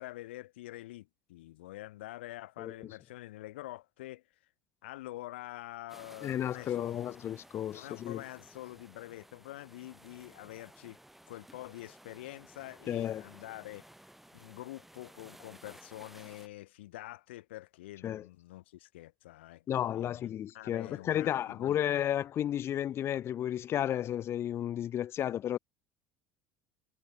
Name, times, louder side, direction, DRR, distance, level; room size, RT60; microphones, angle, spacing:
voice 1, 0.0-4.2 4.8-7.1 7.6-11.0 11.3-13.9 14.3-21.8, left 16 dB, 80° left, 1.3 m, -46 dB
voice 2, 2.6-2.9 6.2-8.2 12.9-13.2 18.0-18.2 19.7-25.6, left 11 dB, 45° left, 1.0 m, -33 dB
sound 1, 5.9-16.5, right 1 dB, 5° right, 6.6 m, -56 dB
hypercardioid pair, 80°, 6 cm